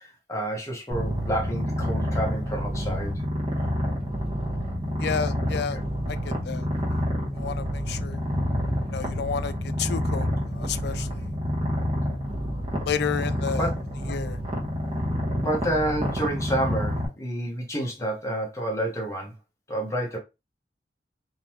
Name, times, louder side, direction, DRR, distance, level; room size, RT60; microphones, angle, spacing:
voice 1, 0.0-3.2 4.8-5.0 5.7-5.8 6.9-7.0 13.5-13.7 15.4-19.3 19.7-20.2, right 1 dB, 20° left, 1.2 m, -29 dB
Purr, 0.9-17.1, equal, 30° right, 1.1 m, -28 dB
voice 2, 5.0-5.8 6.1-6.7 7.4-8.2 8.9-10.3 10.5-11.2 12.8-13.7 14.1-14.4, left 7 dB, 65° left, 0.4 m, -31 dB
3.8 x 2.8 x 3.1 m
head